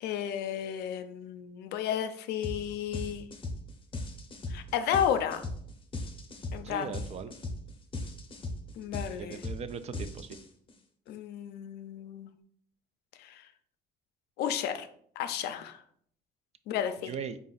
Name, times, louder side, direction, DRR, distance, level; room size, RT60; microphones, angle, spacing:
voice 1, 0.0-3.3 4.5-5.4 6.5-7.0 8.8-9.4 11.1-12.3 13.2-13.5 14.4-14.9 15.2-15.8 16.7-17.1, left 9 dB, 75° left, 9 dB, 0.4 m, -32 dB
sound 1, 2.4-2.6 2.9-10.7, left 2 dB, 30° left, 0.7 m, -38 dB
voice 2, 6.6-7.3 9.1-10.4 17.1-17.4, right 6 dB, 40° right, 11 dB, 0.4 m, -39 dB
4.2 x 2.4 x 3.8 m, 0.62 s
cardioid pair, 110°, 17 cm